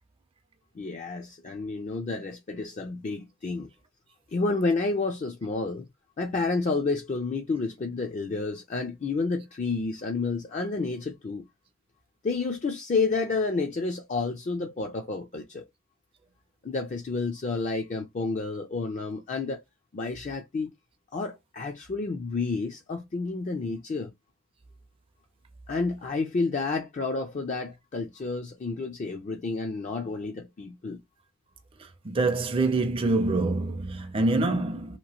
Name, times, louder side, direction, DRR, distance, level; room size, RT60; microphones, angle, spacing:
voice 1, 0.8-3.7 4.3-5.9 6.2-11.5 12.2-15.6 16.6-19.6 19.9-20.7 21.1-24.1 25.7-31.0, left 3 dB, 35° left, 0.4 m, -30 dB
voice 2, 32.0-35.0, right 2 dB, 25° right, 0.4 m, -25 dB
2.9 x 2.5 x 2.8 m
head